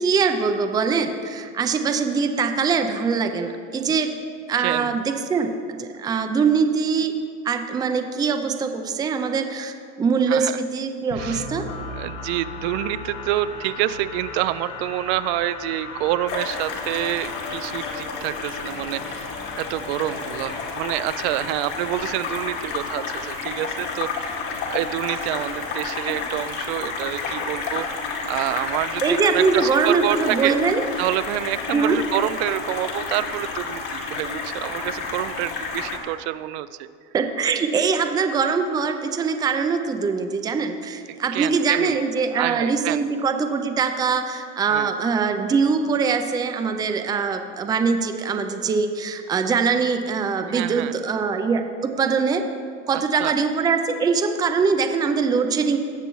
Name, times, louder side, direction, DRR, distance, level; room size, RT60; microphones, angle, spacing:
voice 1, 0.0-4.1 4.5-5.5 5.8-7.1 7.4-11.6 29.0-30.8 31.7-32.0 37.1-52.4 52.9-55.8, right 5 dB, 10° right, 6 dB, 0.4 m, -22 dB
voice 2, 4.6-5.0 10.3-10.6 11.1-11.5 11.9-19.3 19.6-24.4 24.7-27.9 28.3-30.6 31.0-36.9 41.1-42.0 42.4-43.0 44.7-44.9 50.5-50.9 53.2-53.3, right 14 dB, 70° right, 14 dB, 0.5 m, -27 dB
sound 1, 11.1-22.9, left 3 dB, 90° left, 1.5 m, -37 dB
sound 2, 16.3-36.0, left 4 dB, 60° left, 2.0 m, -31 dB
18.0 x 6.7 x 3.1 m, 2.3 s
supercardioid pair, 145°, 33 cm